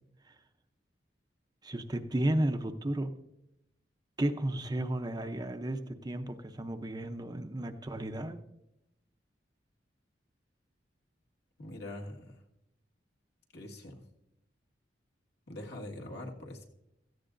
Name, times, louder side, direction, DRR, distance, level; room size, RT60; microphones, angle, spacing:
voice 1, 1.6-3.1 4.2-8.4, right 1 dB, 20° right, 7 dB, 0.6 m, -33 dB
voice 2, 11.6-12.4 13.5-14.0 15.5-16.7, left 1 dB, 65° left, 0 dB, 1.7 m, -43 dB
16.5 x 14.0 x 2.6 m, 0.86 s
head